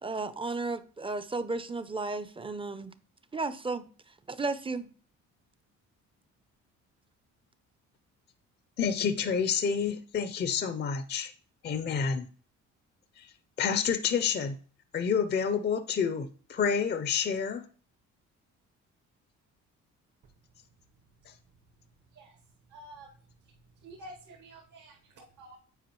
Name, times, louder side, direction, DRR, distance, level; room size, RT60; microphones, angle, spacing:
voice 1, 0.0-2.9 3.3-3.9 4.3-4.9, right 3 dB, 20° right, 0.5 m, -34 dB
voice 2, 8.8-11.3 11.6-12.3 13.2-13.3 13.6-14.6 14.9-17.6 21.3-21.4, left 6 dB, 35° left, 0.5 m, -29 dB
voice 3, 22.7-23.1 23.8-24.9 25.4-25.6, right 1 dB, 70° right, 1.3 m, -48 dB
8.1 x 4.7 x 3.0 m
cardioid pair, 90°, 30 cm